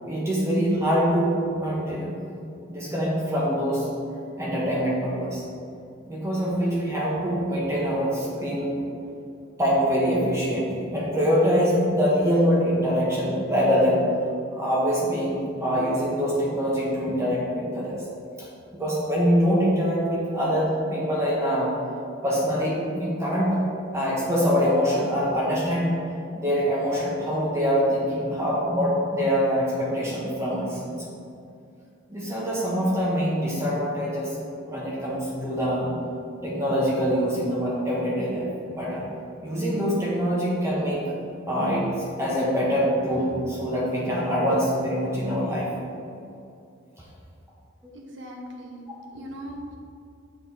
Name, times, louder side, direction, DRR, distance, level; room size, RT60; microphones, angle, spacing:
voice 1, 0.0-2.2 2.7-3.9 4.4-5.4 6.0-8.7 9.6-14.1 14.5-18.0 18.4-18.5 18.7-21.7 22.2-23.6 23.9-26.0 26.3-31.0 32.1-34.4 34.7-35.9 36.4-39.0 39.4-41.0 41.5-41.9 42.2-45.7, equal, 15° right, -6 dB, 0.9 m, -24 dB
voice 2, 47.9-49.8, equal, 60° right, 1 dB, 0.9 m, -39 dB
7.3 x 3.3 x 4.3 m, 2.6 s
head